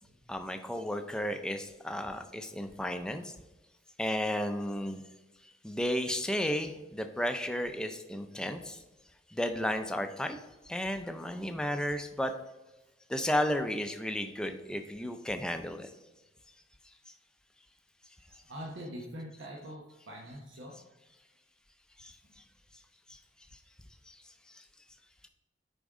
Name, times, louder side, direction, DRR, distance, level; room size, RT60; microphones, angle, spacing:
voice 1, 0.3-3.3 4.0-5.0 5.6-8.8 9.3-10.4 10.6-12.3 13.1-15.9 17.1-17.2 22.0-22.2 23.1-23.2 24.1-24.2 24.5-24.6, equal, 5° left, 6 dB, 0.4 m, -33 dB
voice 2, 18.3-20.8 22.2-22.3, equal, 85° right, -1 dB, 1.0 m, -44 dB
8.4 x 5.1 x 3.7 m, 1.1 s
head